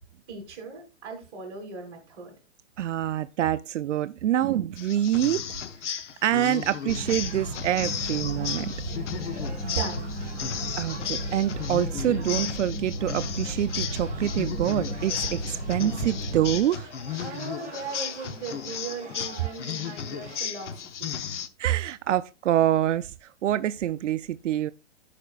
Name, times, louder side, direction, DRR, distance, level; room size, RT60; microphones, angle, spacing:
voice 1, 0.3-2.3 9.6-10.3 17.2-20.7 21.0-21.2, right 4 dB, 25° right, 3.5 m, -38 dB
voice 2, 2.8-5.6 6.2-8.7 10.8-16.9 21.6-24.7, right 12 dB, 85° right, 0.6 m, -26 dB
sound 1, 4.8-21.5, left 8 dB, 80° left, 0.9 m, -35 dB
sound 2, 6.9-16.6, equal, 15° left, 1.4 m, -34 dB
sound 3, 6.9-20.4, right 3 dB, 5° right, 4.0 m, -46 dB
15.0 x 5.1 x 2.4 m
hypercardioid pair, 170°, 35 cm